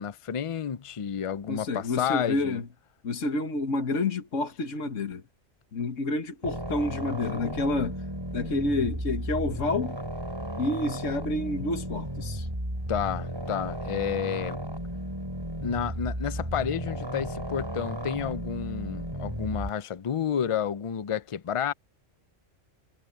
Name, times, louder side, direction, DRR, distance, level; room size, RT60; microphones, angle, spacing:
voice 1, 0.0-2.6 12.9-14.6 15.6-21.7, left 8 dB, 50° left, 0.4 m, -30 dB
voice 2, 1.5-2.7 3.0-5.2 5.7-8.0 8.3-10.0 10.6-12.5, left 2 dB, 70° left, 1.9 m, -29 dB
sound 1, 6.4-19.7, equal, 20° right, 5.0 m, -34 dB
omnidirectional pair, 1.3 m